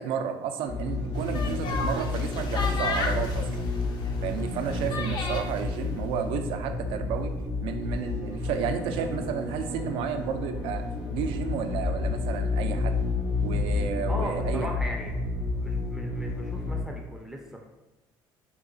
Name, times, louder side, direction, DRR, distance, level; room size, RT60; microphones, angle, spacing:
voice 1, 0.0-3.6 4.2-7.3 7.6-10.8 11.1-13.0 13.4-14.7, right 7 dB, 75° right, 7 dB, 0.4 m, -32 dB
sound 1, 0.7-16.8, left 3 dB, 75° left, 0.9 m, -30 dB
sound 2, 1.2-5.6, left 3 dB, 50° left, 0.5 m, -34 dB
voice 2, 14.1-15.1 15.6-17.7, equal, 5° right, 0 dB, 0.4 m, -38 dB
3.7 x 2.3 x 2.6 m, 1.1 s
cardioid pair, 110°, 9 cm